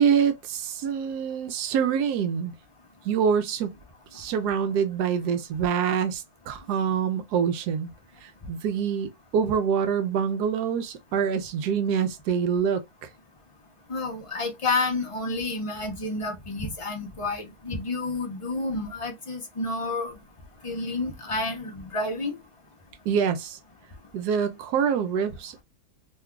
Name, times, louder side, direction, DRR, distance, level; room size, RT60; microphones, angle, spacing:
voice 1, 0.0-2.5 3.0-3.7 4.1-7.9 8.2-13.1 23.1-23.6 24.1-25.6, right 7 dB, 85° right, 1.2 m, -25 dB
voice 2, 13.9-20.1 20.6-22.4, left 2 dB, 45° left, 0.4 m, -30 dB
3.0 x 2.3 x 3.6 m
omnidirectional pair, 1.7 m